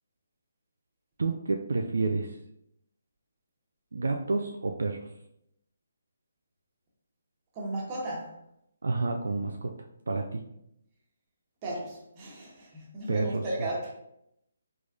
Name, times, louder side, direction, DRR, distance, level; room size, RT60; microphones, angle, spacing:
voice 1, 1.2-2.3 3.9-5.1 8.8-9.7 10.1-10.4 13.1-13.4, right 3 dB, 75° right, 3 dB, 0.3 m, -29 dB
voice 2, 7.5-8.3 11.6-13.9, right 1 dB, 30° right, -4 dB, 1.1 m, -35 dB
3.6 x 3.2 x 2.5 m, 0.80 s
figure-of-eight pair, 150°, 0 cm